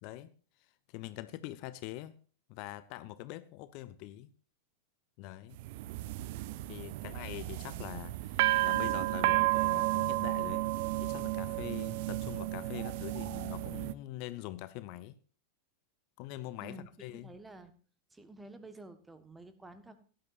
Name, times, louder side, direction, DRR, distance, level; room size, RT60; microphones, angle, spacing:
voice 1, 0.0-0.3 0.6-2.2 2.5-4.3 5.2-5.6 6.7-10.7 11.0-15.2 16.2-17.3, left 15 dB, 45° left, 0.6 m, -44 dB
sound 1, 5.6-13.9, right 18 dB, 50° right, 0.5 m, -32 dB
voice 2, 17.1-17.7 18.1-20.0, right 2 dB, 10° right, 1.3 m, -50 dB
17.0 x 11.5 x 2.6 m
figure-of-eight pair, 90°, 0 cm